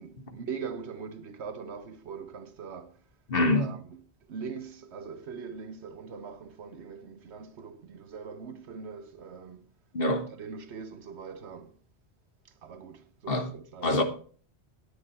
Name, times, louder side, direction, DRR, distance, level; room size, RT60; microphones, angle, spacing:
voice 1, 0.0-3.0 3.5-4.0 4.3-9.7 10.4-11.8 12.6-14.0, right 6 dB, 90° right, 1.2 m, -41 dB
voice 2, 3.3-3.7 9.9-10.3 13.3-13.5 13.8-14.0, left 2 dB, 60° left, 1.6 m, -25 dB
9.8 x 9.4 x 4.3 m
omnidirectional pair, 1.1 m